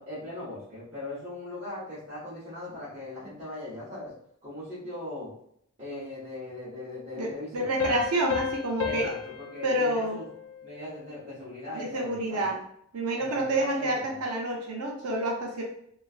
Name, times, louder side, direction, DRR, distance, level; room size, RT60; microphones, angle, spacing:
voice 1, 0.0-4.1 4.4-5.3 5.8-8.0 8.8-10.2 10.6-12.5 13.2-14.2, left 2 dB, 30° right, -11 dB, 1.0 m, -39 dB
voice 2, 7.2-9.1 9.6-10.2 11.7-12.6 12.9-15.6, right 1 dB, 85° right, 0 dB, 0.6 m, -28 dB
sound 1, 7.8-11.1, left 7 dB, 65° left, 0.4 m, -35 dB
3.0 x 2.4 x 2.4 m, 0.69 s
head